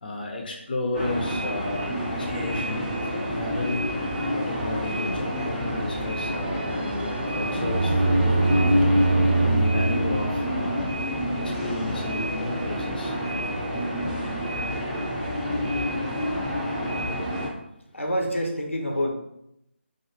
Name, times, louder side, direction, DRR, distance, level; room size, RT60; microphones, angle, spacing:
voice 1, 0.0-2.8 3.1-3.9 4.3-8.8 9.4-10.9 11.4-13.1 16.6-17.1, left 2 dB, 45° left, 1 dB, 0.7 m, -33 dB
sound 1, 0.9-17.5, equal, 5° right, 0.6 m, -28 dB
sound 2, 6.2-11.0, right 3 dB, 60° right, 0.6 m, -25 dB
voice 2, 17.9-19.1, equal, 85° left, 2 dB, 0.9 m, -26 dB
4.9 x 2.6 x 2.9 m, 0.81 s
figure-of-eight pair, 155°, 7 cm